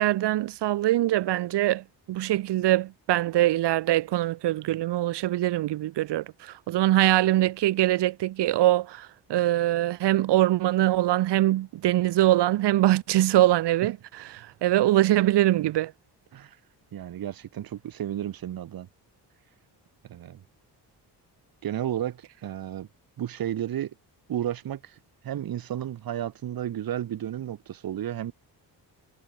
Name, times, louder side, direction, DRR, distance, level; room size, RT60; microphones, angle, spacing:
voice 1, 0.0-15.9, right 15 dB, 75° right, 0.8 m, -23 dB
voice 2, 16.9-18.9 20.1-20.4 21.6-22.9 23.2-23.9 24.3-25.0 25.2-28.3, right 11 dB, 55° right, 1.2 m, -32 dB
wide cardioid pair, 145°, 42 cm